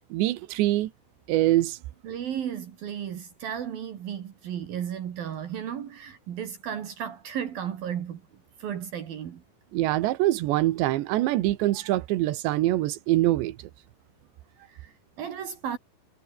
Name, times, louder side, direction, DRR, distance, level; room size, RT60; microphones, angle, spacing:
voice 1, 0.1-0.9 1.3-1.8 9.7-13.6, right 16 dB, 90° right, 3.4 m, -24 dB
voice 2, 2.0-8.2 8.6-9.4 14.7-15.8, right 9 dB, 60° right, 3.6 m, -34 dB
omnidirectional pair, 4.9 m